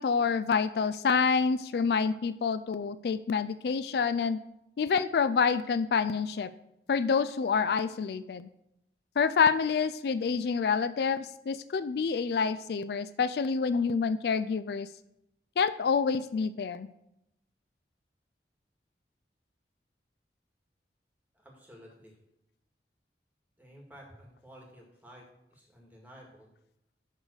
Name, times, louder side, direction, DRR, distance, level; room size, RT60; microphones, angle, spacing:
voice 1, 0.0-4.4 4.8-6.5 6.9-8.5 9.2-14.9 15.6-16.9, left 5 dB, 65° left, 14 dB, 0.3 m, -27 dB
voice 2, 21.3-22.1 23.6-26.5, equal, 10° right, -1 dB, 2.0 m, -53 dB
11.5 x 4.0 x 6.3 m, 0.83 s
head